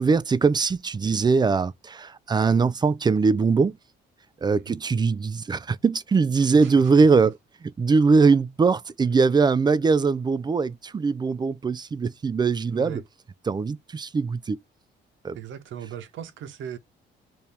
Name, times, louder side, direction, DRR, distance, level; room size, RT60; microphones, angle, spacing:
voice 1, 0.0-3.8 4.4-7.3 7.8-13.0 13.5-14.6 15.2-15.4, right 4 dB, 20° right, 0.3 m, -21 dB
voice 2, 6.5-6.9 12.7-13.0 15.3-16.8, right 9 dB, 75° right, 0.8 m, -38 dB
3.0 x 2.8 x 3.3 m
cardioid pair, 90°, 20 cm